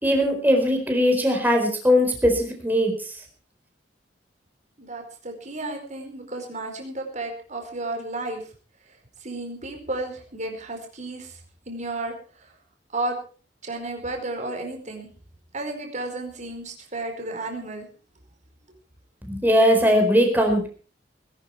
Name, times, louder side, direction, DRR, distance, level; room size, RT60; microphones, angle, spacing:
voice 1, 0.0-2.9 19.3-20.7, equal, 10° right, 3 dB, 4.4 m, -20 dB
voice 2, 4.8-8.4 9.2-11.4 11.7-12.1 12.4-12.5 12.9-13.2 13.6-15.1 15.5-17.9, right 2 dB, 40° right, 3 dB, 4.7 m, -32 dB
20.5 x 12.0 x 4.6 m, 0.39 s
head